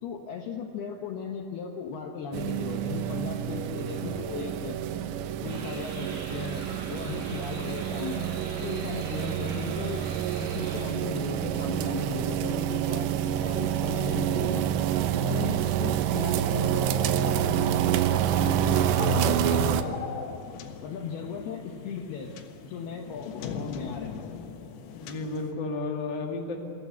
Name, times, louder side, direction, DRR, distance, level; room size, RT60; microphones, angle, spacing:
voice 1, 0.0-4.8 5.4-8.3 8.6-10.0 10.4-13.1 13.4-14.8 15.1-16.9 17.3-20.0 20.8-22.3 22.6-24.3, left 6 dB, 70° left, 2 dB, 2.5 m, -37 dB
sound 1, 2.3-19.8, right 10 dB, 80° right, 2.6 m, -27 dB
sound 2, 5.5-10.8, right 2 dB, 55° right, 7.0 m, -44 dB
sound 3, 19.0-25.5, left 6 dB, 90° left, 4.2 m, -40 dB
voice 2, 24.9-26.6, left 3 dB, 40° left, 1 dB, 1.6 m, -32 dB
24.5 x 15.5 x 8.5 m, 3.0 s
omnidirectional pair, 5.9 m